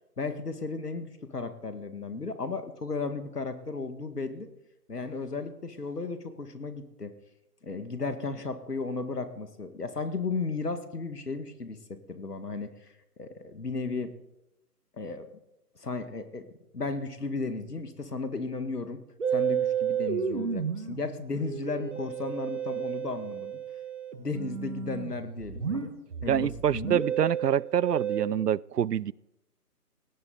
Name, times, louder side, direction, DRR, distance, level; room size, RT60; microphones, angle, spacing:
voice 1, 0.2-4.5 4.9-7.1 7.6-12.7 13.2-14.1 15.0-15.3 15.8-16.5 16.7-19.0 19.3-23.6 24.2-25.9 26.2-27.0, left 3 dB, 70° left, 9 dB, 2.0 m, -34 dB
Musical instrument, 19.2-28.3, right 7 dB, 50° right, 1.7 m, -32 dB
voice 2, 26.3-29.1, right 9 dB, 75° right, 26 dB, 0.5 m, -26 dB
19.5 x 17.5 x 4.0 m, 0.89 s
figure-of-eight pair, 145°, 48 cm